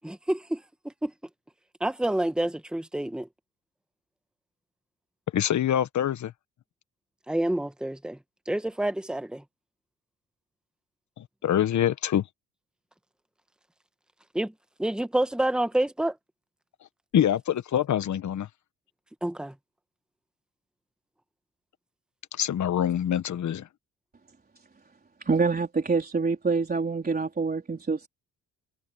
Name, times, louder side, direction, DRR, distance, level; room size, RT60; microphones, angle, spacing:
voice 1, 0.0-1.1 1.8-3.3 7.3-8.2 8.5-9.4 14.3-14.5 14.8-16.2 19.2-19.5, right 1 dB, 5° right, 1.3 m, -28 dB
voice 2, 5.3-6.3 11.2-12.3 17.1-18.5 22.3-23.7, left 10 dB, 60° left, 1.3 m, -25 dB
voice 3, 25.2-28.1, right 4 dB, 30° right, 4.0 m, -26 dB
cardioid pair, 95°, 32 cm